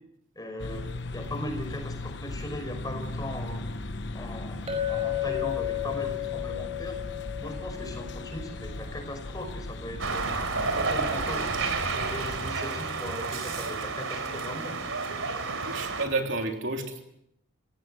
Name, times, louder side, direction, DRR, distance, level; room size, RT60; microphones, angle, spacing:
voice 1, 0.4-0.8 1.1-3.6 4.1-4.6 4.9-7.0 7.4-10.3 10.8-14.8, left 1 dB, 20° left, 5 dB, 5.5 m, -38 dB
sound 1, 0.6-12.4, left 2 dB, 55° left, 1.0 m, -38 dB
Chink clink, 4.7-9.1, left 13 dB, 30° right, 5.5 m, -33 dB
sound 2, 10.0-16.1, right 4 dB, 80° right, 3.6 m, -30 dB
voice 2, 15.6-17.0, right 2 dB, 65° right, 3 dB, 3.5 m, -30 dB
29.0 x 17.5 x 7.8 m, 0.78 s
head